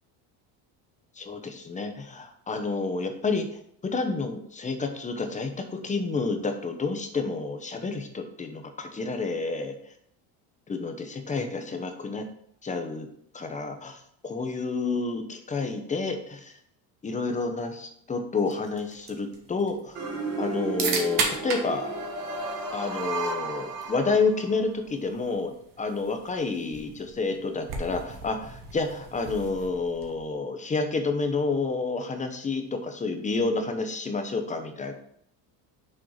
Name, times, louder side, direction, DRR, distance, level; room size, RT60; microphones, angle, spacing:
voice 1, 1.2-3.5 3.8-9.7 10.7-12.2 12.6-13.1 13.3-16.5 17.0-20.0 20.4-21.9 22.7-34.9, left 3 dB, 20° left, 6 dB, 0.9 m, -29 dB
sound 1, 18.4-30.3, right 4 dB, 55° right, 1.6 m, -37 dB
sound 2, 19.9-24.6, right 3 dB, 40° right, 1.7 m, -33 dB
6.5 x 4.4 x 4.8 m, 0.70 s
cardioid pair, 130°, 40 cm